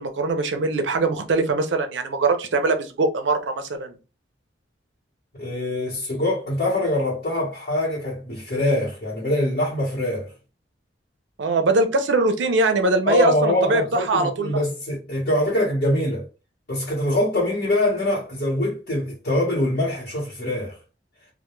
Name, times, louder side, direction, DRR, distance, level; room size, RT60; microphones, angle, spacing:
voice 1, 0.0-4.0 11.4-14.6, right 3 dB, 80° right, 0.5 m, -22 dB
voice 2, 5.3-10.3 13.1-16.3 16.7-20.8, left 1 dB, 55° left, 1.0 m, -24 dB
2.2 x 2.1 x 3.0 m
head